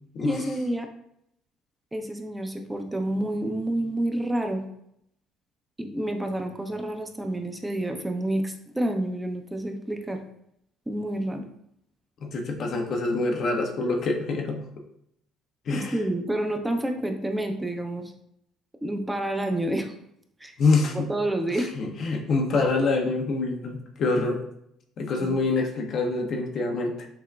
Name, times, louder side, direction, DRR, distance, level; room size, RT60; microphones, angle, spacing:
voice 1, 0.2-0.9 1.9-4.6 5.8-10.2 10.9-11.5 12.5-12.6 15.7-18.1 18.8-19.9 20.4-20.5 20.9-21.7 25.2-25.4, right 1 dB, 10° right, 4 dB, 0.5 m, -29 dB
voice 2, 12.2-14.6 15.7-15.9 20.6-21.1 21.7-24.4 25.0-27.1, left 3 dB, 55° left, 2 dB, 0.6 m, -25 dB
5.8 x 2.1 x 2.3 m, 0.74 s
hypercardioid pair, 65°, 0 cm